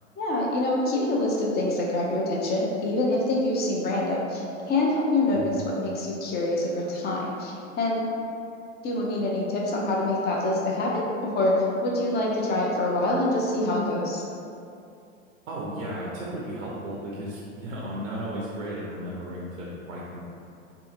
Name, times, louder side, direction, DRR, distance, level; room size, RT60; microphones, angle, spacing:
voice 1, 0.2-8.1 8.8-11.5 11.8-14.2, left 1 dB, 25° left, -3 dB, 0.5 m, -26 dB
voice 2, 15.5-20.2, equal, 75° right, -5 dB, 0.6 m, -34 dB
2.7 x 2.6 x 2.5 m, 2.5 s
hypercardioid pair, 90°, 40 cm